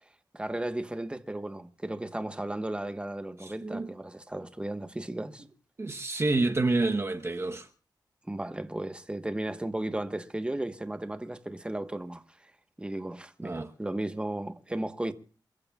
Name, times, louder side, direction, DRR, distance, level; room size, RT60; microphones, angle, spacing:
voice 1, 0.3-5.4 8.3-12.5 12.8-15.1, right 1 dB, 15° right, 1.2 m, -35 dB
voice 2, 3.4-3.9 5.8-7.7 13.4-13.7, right 2 dB, 35° right, 1.0 m, -28 dB
28.0 x 14.5 x 2.4 m
cardioid pair, 75°, 8 cm